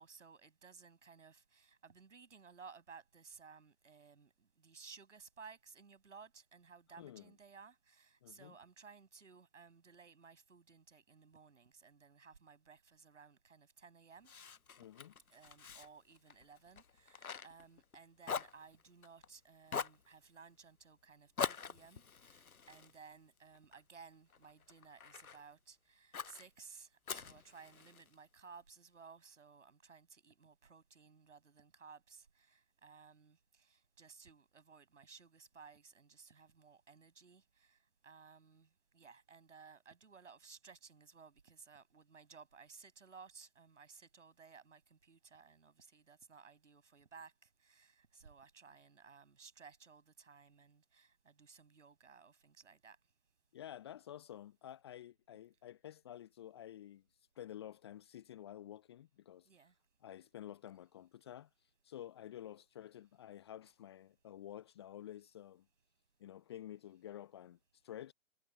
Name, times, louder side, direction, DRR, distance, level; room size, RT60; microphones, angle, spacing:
voice 1, 0.0-14.3 15.3-38.7 38.9-53.0 59.5-59.7, right 5 dB, 60° right, 6.8 m, -58 dB
voice 2, 8.2-8.5 14.8-15.1 53.5-57.0 57.4-59.5 60.0-61.5 61.8-65.6 66.2-67.6 67.8-68.1, left 11 dB, 20° left, 0.8 m, -51 dB
Fire, 14.2-18.0 18.2-19.3 19.7-20.1 21.4-23.8 24.3-25.4 26.1-26.4 27.1-28.1, left 6 dB, 85° left, 0.7 m, -44 dB
figure-of-eight pair, 135°, 42 cm